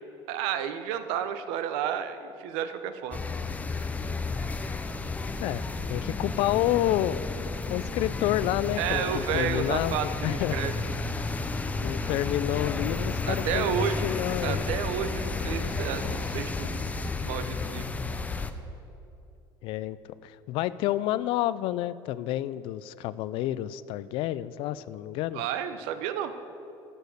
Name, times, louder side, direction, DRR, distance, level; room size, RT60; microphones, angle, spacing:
voice 1, 0.3-3.2 8.8-10.7 13.3-14.1 14.4-16.9 17.2-17.9 25.3-26.3, right 9 dB, 85° right, 10 dB, 0.8 m, -31 dB
sound 1, 3.1-18.5, left 3 dB, 15° left, 0.6 m, -32 dB
voice 2, 5.9-7.2 7.7-10.6 11.8-14.6 19.6-20.0 20.2-25.4, left 14 dB, 70° left, 17 dB, 0.4 m, -29 dB
12.0 x 6.3 x 8.1 m, 2.8 s
cardioid pair, 120°, 9 cm